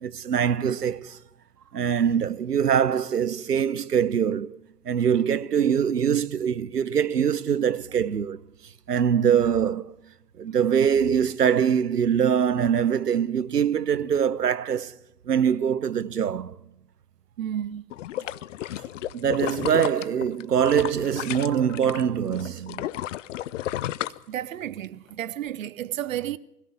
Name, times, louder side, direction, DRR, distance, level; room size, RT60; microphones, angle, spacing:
voice 1, 0.0-1.2 1.7-4.6 4.8-8.4 8.9-10.0 10.4-14.9 15.3-16.6 19.1-22.9, right 8 dB, 80° right, 0.8 m, -23 dB
voice 2, 17.4-17.8 24.3-26.4, right 11 dB, 60° right, 0.9 m, -32 dB
sound 1, 17.9-22.0 22.3-24.8 25.3-25.4, left 13 dB, 50° left, 0.7 m, -32 dB
21.0 x 17.5 x 7.1 m
figure-of-eight pair, 95°, 46 cm